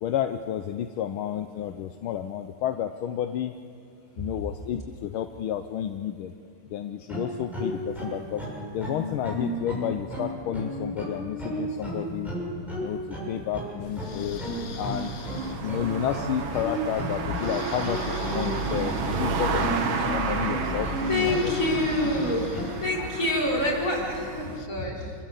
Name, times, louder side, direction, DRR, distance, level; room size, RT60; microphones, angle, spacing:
voice 1, 0.0-3.5 4.2-6.3 6.7-8.5 8.7-12.4 12.7-14.4 14.8-15.1 15.6-21.5, left 10 dB, 80° left, 7 dB, 1.6 m, -31 dB
sound 1, 7.1-22.6, right 1 dB, ahead, 7.3 m, -33 dB
sound 2, 13.8-24.7, left 6 dB, 50° left, 1.2 m, -42 dB
sound 3, 13.9-24.5, right 4 dB, 65° right, 2.2 m, -32 dB
voice 2, 21.0-22.4 22.8-25.1, left 1 dB, 35° left, -5 dB, 6.1 m, -27 dB
28.0 x 15.0 x 8.4 m, 2.6 s
omnidirectional pair, 2.4 m